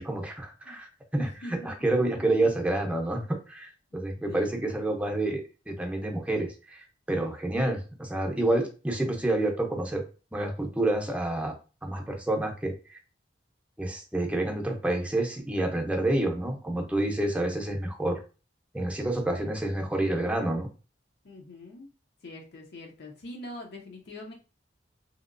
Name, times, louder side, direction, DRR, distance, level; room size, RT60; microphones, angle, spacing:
voice 1, 0.0-10.0 10.3-11.6 11.8-13.0 13.8-18.2 18.7-20.7, right 1 dB, 5° right, 1 dB, 0.6 m, -28 dB
voice 2, 1.2-1.7 2.0-2.5 3.9-4.5 21.2-21.9 22.2-24.3, left 1 dB, 60° left, 1 dB, 0.6 m, -43 dB
2.9 x 2.8 x 2.5 m, 0.33 s
head